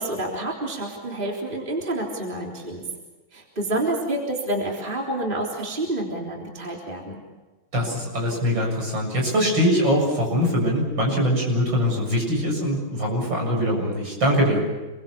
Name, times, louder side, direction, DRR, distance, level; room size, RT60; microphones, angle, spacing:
voice 1, 0.0-2.8 3.3-7.2, right 1 dB, 25° right, -1 dB, 3.8 m, -28 dB
voice 2, 7.7-14.6, equal, 65° right, -1 dB, 8.0 m, -22 dB
28.5 x 23.0 x 7.2 m, 1.2 s
omnidirectional pair, 2.2 m